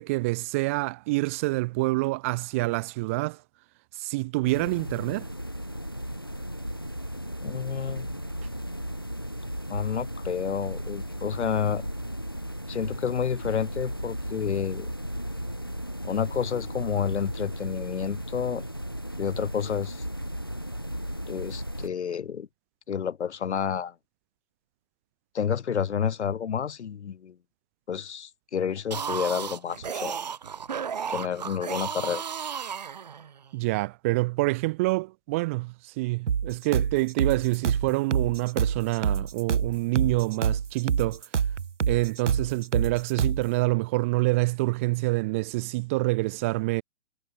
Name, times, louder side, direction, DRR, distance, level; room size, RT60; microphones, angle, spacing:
voice 1, 0.0-3.4 4.0-5.3 33.5-41.2 41.9-46.8, right 23 dB, 10° right, 1.1 m, -27 dB
sound 1, 4.5-21.9, equal, 20° left, 0.4 m, -35 dB
voice 2, 7.4-8.1 9.7-11.8 12.7-14.9 16.0-18.6 19.2-20.0 21.3-22.5 22.9-23.9 25.3-27.4 27.9-30.2 31.1-32.2, left 7 dB, 65° left, 2.0 m, -30 dB
sound 2, 28.8-33.5, right 7 dB, 35° right, 0.7 m, -34 dB
sound 3, 36.3-43.5, right 7 dB, 75° right, 3.0 m, -27 dB
hypercardioid pair, 180°, 37 cm